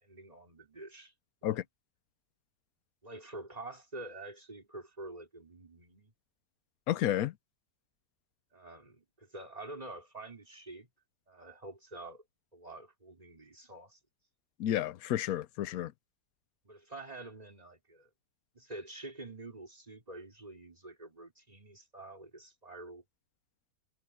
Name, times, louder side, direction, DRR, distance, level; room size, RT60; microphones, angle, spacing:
voice 1, 0.0-1.1 1.4-1.6 3.0-6.1 8.5-10.9 11.3-12.2 12.5-14.0 16.6-18.1 18.5-23.0, right 2 dB, 20° right, 4.0 m, -47 dB
voice 2, 6.9-7.3 14.6-15.9, left 12 dB, 65° left, 1.0 m, -31 dB
omnidirectional pair, 1.8 m